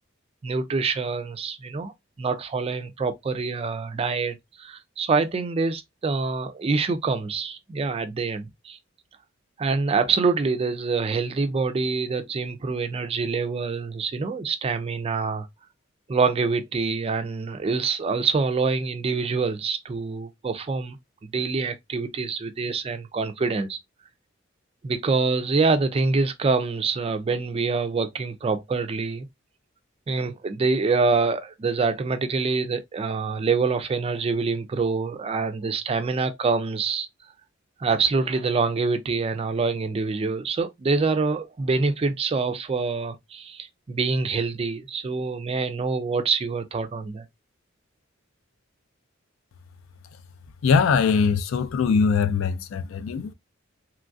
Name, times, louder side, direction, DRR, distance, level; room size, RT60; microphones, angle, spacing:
voice 1, 0.4-1.9 2.2-8.8 9.6-15.5 16.1-21.0 21.3-23.8 24.8-29.3 30.1-37.1 37.8-47.2, right 4 dB, 30° right, 0.3 m, -25 dB
voice 2, 50.6-53.3, left 5 dB, 70° left, 0.3 m, -21 dB
3.0 x 2.3 x 2.4 m
head